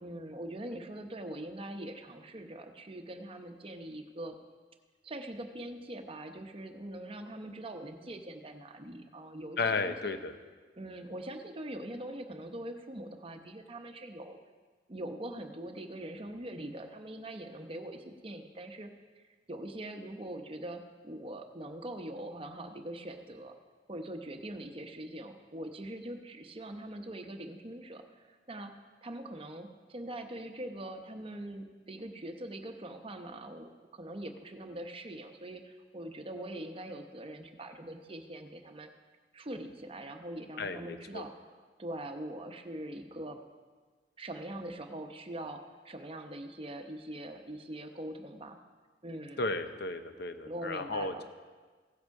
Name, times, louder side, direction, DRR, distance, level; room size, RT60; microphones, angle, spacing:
voice 1, 0.0-4.4 5.0-10.1 10.8-14.4 14.9-18.9 19.2-19.3 19.5-23.5 23.9-28.7 29.0-38.9 39.3-41.3 41.8-43.4 44.2-48.6 49.0-49.4 50.4-51.2, right 1 dB, 30° right, 5 dB, 0.9 m, -42 dB
voice 2, 9.6-10.3 40.6-41.2 49.4-51.2, left 3 dB, 60° left, 9 dB, 0.8 m, -34 dB
16.5 x 7.9 x 4.8 m, 1.4 s
head